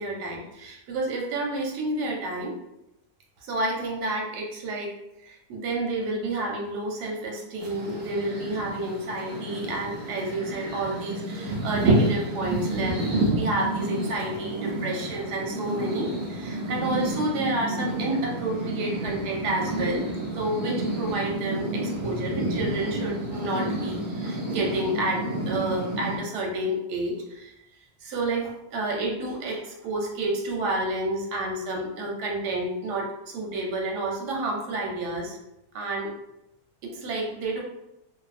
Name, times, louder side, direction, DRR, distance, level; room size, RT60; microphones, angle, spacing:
voice 1, 0.0-2.5 3.4-5.0 5.2-20.0 20.3-27.5 28.0-35.4 35.7-36.1 36.8-37.6, right 2 dB, 90° right, -1 dB, 1.2 m, -30 dB
sound 1, 7.6-26.2, right 1 dB, 65° right, 0.9 m, -29 dB
2.7 x 2.2 x 2.4 m, 0.87 s
omnidirectional pair, 1.7 m